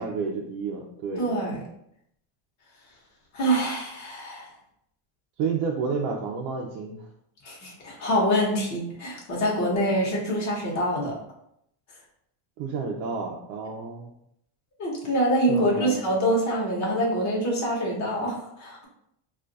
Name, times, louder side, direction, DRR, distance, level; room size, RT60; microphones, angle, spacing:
voice 1, 0.0-1.2 5.4-7.1 12.6-14.1 15.5-16.0, right 5 dB, 80° right, -1 dB, 0.6 m, -30 dB
voice 2, 1.2-1.6 3.3-4.5 7.4-11.1 14.8-18.9, equal, 35° left, -3 dB, 1.0 m, -25 dB
2.5 x 2.3 x 3.9 m, 0.75 s
cardioid pair, 145°, 48 cm